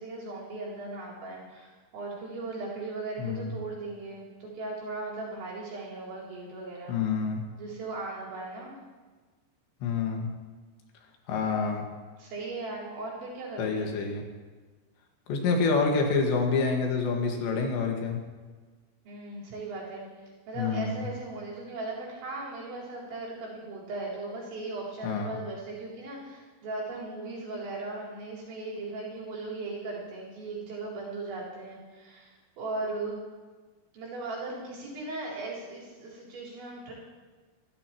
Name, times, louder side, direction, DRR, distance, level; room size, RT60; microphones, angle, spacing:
voice 1, 0.0-7.0 7.6-8.8 12.2-13.9 19.0-20.1 20.5-33.2 33.9-36.9, right 3 dB, 85° right, -7 dB, 6.6 m, -38 dB
voice 2, 3.2-3.5 6.9-7.4 9.8-10.3 11.3-11.9 13.6-14.2 15.3-18.2 20.6-21.1 25.0-25.4, left 4 dB, 80° left, 2 dB, 4.0 m, -27 dB
27.0 x 13.5 x 3.0 m, 1.4 s
omnidirectional pair, 5.1 m